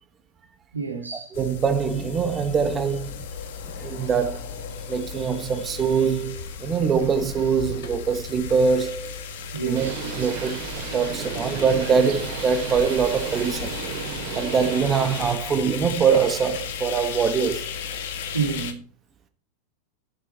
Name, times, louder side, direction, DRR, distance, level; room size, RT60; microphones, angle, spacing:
voice 1, 0.7-1.3 9.5-10.3 18.3-18.8, right 5 dB, 80° right, 3.0 m, -29 dB
sound 1, 1.3-18.7, left 7 dB, 55° left, 1.7 m, -35 dB
voice 2, 1.3-3.2 3.6-4.6 4.9-9.2 9.6-9.9 10.2-10.6 10.9-13.8 14.1-17.7, right 6 dB, 20° right, 1.2 m, -23 dB
Bird, 9.8-15.3, right 7 dB, 45° right, 3.0 m, -33 dB
11.5 x 8.1 x 4.2 m
figure-of-eight pair, 90°, 0 cm